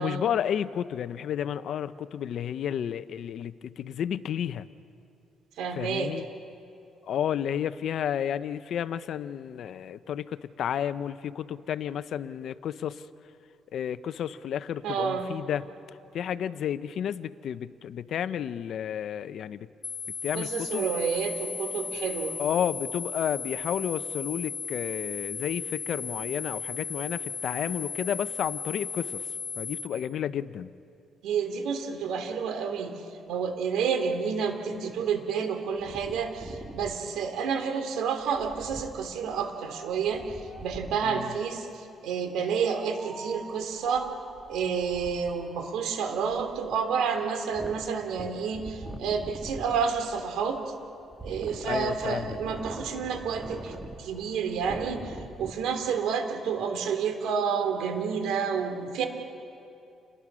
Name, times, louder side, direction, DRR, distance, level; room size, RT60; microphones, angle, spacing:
voice 1, 0.0-4.7 5.7-6.2 7.1-13.0 13.7-15.6 16.1-19.7 20.2-20.8 22.4-29.3 29.6-30.7 41.0-41.3 51.6-52.4, left 9 dB, 70° left, 13 dB, 0.8 m, -31 dB
voice 2, 5.6-6.1 14.8-15.3 20.3-22.4 31.2-32.9 33.3-44.1 44.4-50.6 51.2-59.0, right 6 dB, 85° right, 6 dB, 3.0 m, -30 dB
sound 1, 19.8-29.8, left 5 dB, 30° left, 6.1 m, -36 dB
Wind, 35.8-41.2 42.3-55.5, right 1 dB, 15° right, 2.1 m, -44 dB
30.0 x 22.0 x 6.3 m, 2.6 s
cardioid pair, 90°, 0 cm